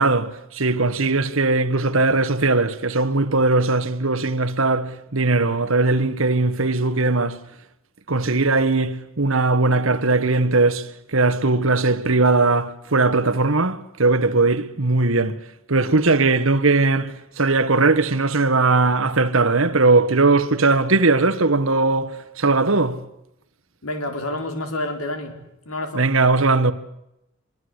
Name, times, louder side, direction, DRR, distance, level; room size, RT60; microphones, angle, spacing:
voice 1, 0.0-7.4 8.1-10.9 11.1-15.3 15.7-23.0 25.9-26.7, right 3 dB, 70° right, 1.5 m, -19 dB
voice 2, 23.8-25.4 25.6-26.1, left 1 dB, 85° left, 4.6 m, -28 dB
25.5 x 23.5 x 8.2 m
head